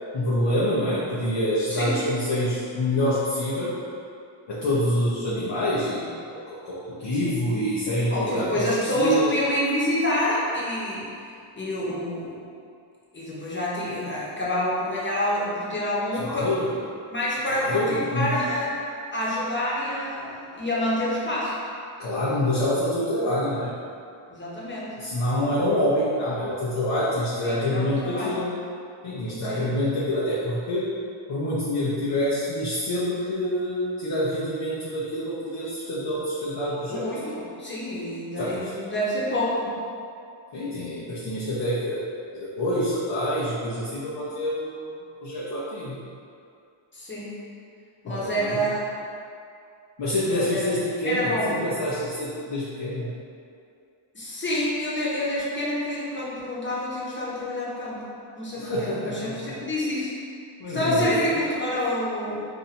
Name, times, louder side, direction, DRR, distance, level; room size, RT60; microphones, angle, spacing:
voice 1, 0.1-3.7 4.5-8.7 8.9-9.3 16.2-16.7 17.6-18.4 22.0-23.8 25.0-28.5 29.0-30.9 31.3-37.1 38.4-38.7 40.5-42.0 42.3-46.0 48.1-48.6 50.0-53.1 58.6-59.5 60.6-61.3, left 1 dB, 55° left, -9 dB, 0.8 m, -26 dB
voice 2, 1.7-2.0 7.2-7.4 8.1-11.1 11.6-12.4 13.1-16.5 17.1-18.7 19.1-21.5 24.3-24.9 27.4-28.3 29.4-29.7 36.9-39.8 46.9-47.4 48.0-49.0 50.2-50.7 51.0-51.6 54.1-58.0 58.4-60.1 60.7-62.4, left 1 dB, 25° left, -7 dB, 1.1 m, -27 dB
2.7 x 2.5 x 4.2 m, 2.4 s
cardioid pair, 70°, 49 cm